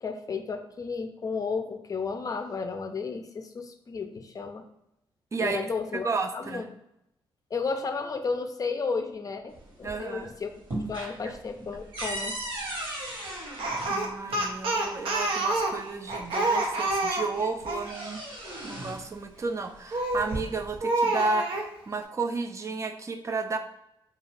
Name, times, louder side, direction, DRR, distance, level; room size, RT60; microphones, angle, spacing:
voice 1, 0.0-4.6 5.4-6.6 7.5-9.5 9.8-10.5 10.9-12.4, left 4 dB, 40° left, 6 dB, 0.4 m, -33 dB
voice 2, 6.0-6.6 9.8-10.3 11.2-11.3 13.9-18.2 18.6-23.6, right 3 dB, 35° right, 5 dB, 0.3 m, -32 dB
sound 1, 9.5-10.2 10.5-14.5 15.6-15.7 16.1-17.0 17.4-19.1 20.0-20.8, right 1 dB, 65° right, 1.2 m, -37 dB
Speech, 13.6-17.9 19.9-20.3 20.8-21.7, right 2 dB, 80° right, 0.5 m, -28 dB
2.4 x 2.3 x 3.3 m, 0.82 s
cardioid pair, 75°, 9 cm